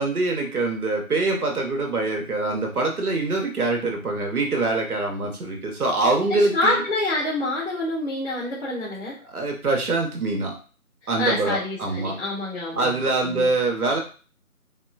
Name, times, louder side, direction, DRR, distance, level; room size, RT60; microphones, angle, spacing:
voice 1, 0.0-6.8 9.2-10.6 11.1-12.2 12.7-14.0, right 3 dB, 85° right, 2 dB, 0.9 m, -24 dB
voice 2, 6.3-9.2 11.2-13.5, left 2 dB, 50° left, -9 dB, 1.4 m, -27 dB
3.6 x 2.2 x 2.3 m, 0.37 s
figure-of-eight pair, 170°, 43 cm